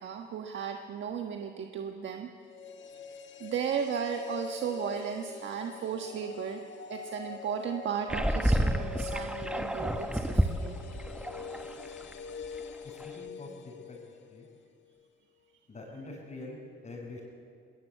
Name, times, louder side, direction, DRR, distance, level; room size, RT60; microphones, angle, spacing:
voice 1, 0.0-2.3 3.4-6.6 6.9-10.8 12.8-13.2, right 7 dB, 70° right, 4 dB, 1.4 m, -35 dB
sound 1, 2.4-14.6 14.8-14.9, left 5 dB, 70° left, 1.5 m, -44 dB
sound 2, 8.1-12.1 12.4-12.6 13.0-13.1, right 1 dB, 5° right, 1.4 m, -29 dB
voice 2, 12.8-14.5 15.7-17.2, left 2 dB, 35° left, -6 dB, 5.8 m, -45 dB
21.5 x 19.5 x 8.4 m, 2.2 s
cardioid pair, 90°, 20 cm